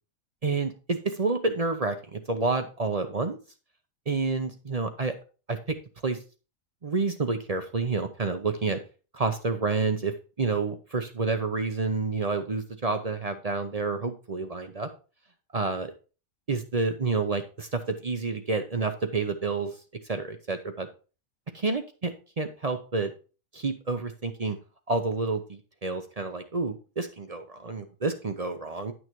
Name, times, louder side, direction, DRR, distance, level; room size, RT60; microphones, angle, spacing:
voice 1, 0.4-3.4 4.1-5.1 5.5-5.8 6.0-6.2 6.8-8.8 9.1-14.9 15.5-15.9 16.5-19.7 20.1-20.9 21.6-23.1 23.5-24.6 24.9-28.9, right 3 dB, 40° right, 8 dB, 0.6 m, -29 dB
10.5 x 6.3 x 3.1 m, 0.36 s
omnidirectional pair, 1.5 m